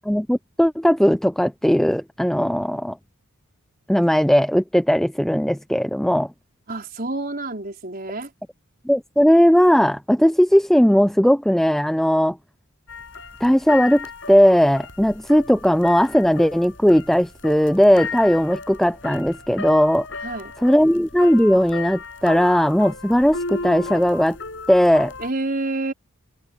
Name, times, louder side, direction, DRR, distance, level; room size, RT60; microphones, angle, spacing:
voice 1, 0.0-3.0 3.9-6.3 8.9-12.4 13.4-20.1 20.6-24.4 24.7-25.1, equal, ahead, 0.4 m, -18 dB
voice 2, 6.7-8.3 20.2-20.5 25.2-25.9, right 2 dB, 40° right, 4.8 m, -28 dB
sound 1, 12.9-25.3, left 4 dB, 60° left, 6.7 m, -35 dB
head